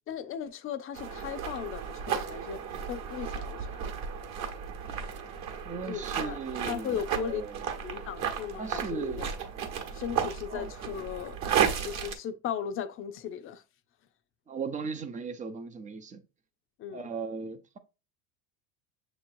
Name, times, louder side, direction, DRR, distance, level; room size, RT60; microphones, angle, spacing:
voice 1, 0.1-3.8 5.9-6.4 6.6-7.4 7.8-9.3 9.9-11.4 11.7-13.6 16.8-17.1, left 8 dB, 30° left, 0.6 m, -37 dB
sound 1, 0.9-12.1, right 7 dB, 40° right, 1.1 m, -34 dB
voice 2, 5.6-7.6 8.6-9.2 10.5-10.7 14.5-16.2 16.9-17.8, right 5 dB, 20° right, 0.5 m, -37 dB
6.6 x 3.1 x 2.6 m
supercardioid pair, 125°, 41 cm